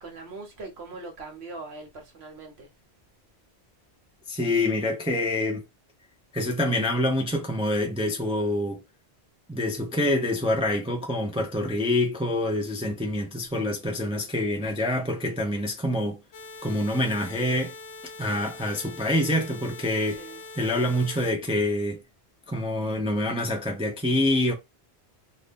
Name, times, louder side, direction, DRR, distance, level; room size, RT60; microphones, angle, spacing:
voice 1, 0.0-2.7 14.3-14.5 20.2-20.4, right 3 dB, 70° right, 1.2 m, -41 dB
voice 2, 4.3-5.6 6.3-8.8 9.5-16.2 16.6-17.7 18.2-20.2 20.6-22.0 22.5-24.5, left 1 dB, 5° right, 0.5 m, -26 dB
sound 1, 16.3-21.3, left 3 dB, 80° left, 0.9 m, -43 dB
2.7 x 2.6 x 3.5 m
omnidirectional pair, 1.1 m